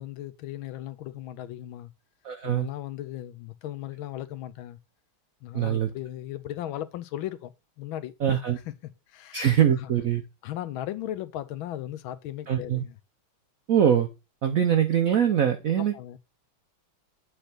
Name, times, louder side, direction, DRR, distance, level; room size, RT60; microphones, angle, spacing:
voice 1, 0.0-1.9 2.4-4.8 5.4-7.5 7.8-9.9 10.4-13.0 15.8-16.2, left 13 dB, 75° left, 1.4 m, -37 dB
voice 2, 2.2-2.7 5.5-5.9 8.2-8.6 9.3-10.2 12.5-12.8 13.7-14.1 14.4-16.2, right 9 dB, 75° right, 0.7 m, -23 dB
7.6 x 3.4 x 5.9 m
omnidirectional pair, 2.3 m